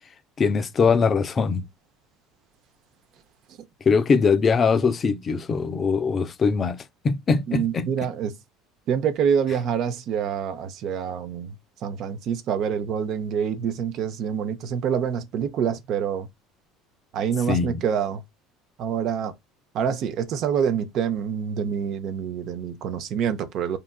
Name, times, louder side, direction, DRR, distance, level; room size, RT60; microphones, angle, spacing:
voice 1, 0.4-1.6 3.8-8.1 17.5-17.8, left 5 dB, 35° left, 0.4 m, -22 dB
voice 2, 7.5-8.3 8.9-11.5 11.8-16.3 17.1-18.2 18.8-19.3 19.7-23.8, right 7 dB, 55° right, 0.4 m, -26 dB
2.9 x 2.3 x 2.3 m
hypercardioid pair, 75°, 0 cm